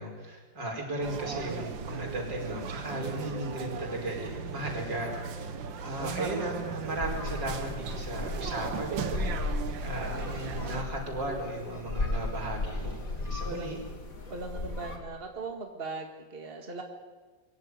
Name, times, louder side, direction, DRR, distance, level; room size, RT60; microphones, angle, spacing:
voice 1, 0.0-5.1 5.8-13.8, right 1 dB, 70° right, 1 dB, 5.6 m, -36 dB
sound 1, 1.0-10.8, right 6 dB, 85° right, 2.0 m, -37 dB
sound 2, 7.0-15.0, left 3 dB, 45° left, 2.9 m, -35 dB
voice 2, 13.4-13.8 14.3-16.8, right 3 dB, 30° right, 3 dB, 2.0 m, -39 dB
23.5 x 15.0 x 9.6 m, 1.4 s
omnidirectional pair, 2.0 m